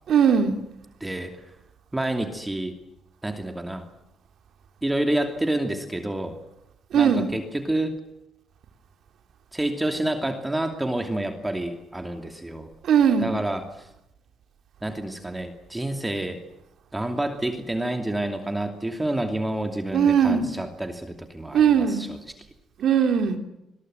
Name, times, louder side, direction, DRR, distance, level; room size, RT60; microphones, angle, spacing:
voice 1, 0.1-0.6 6.9-7.3 12.8-13.3 19.9-20.5 21.5-22.0 22.8-23.4, right 7 dB, 70° right, 6 dB, 3.1 m, -19 dB
voice 2, 1.0-1.4 1.9-2.8 3.2-3.9 4.8-6.4 6.9-8.0 9.5-12.7 13.2-13.9 14.8-16.4 16.9-22.1, right 1 dB, 10° right, 5 dB, 2.7 m, -28 dB
27.5 x 21.5 x 8.0 m, 0.83 s
cardioid pair, 90°, 0 cm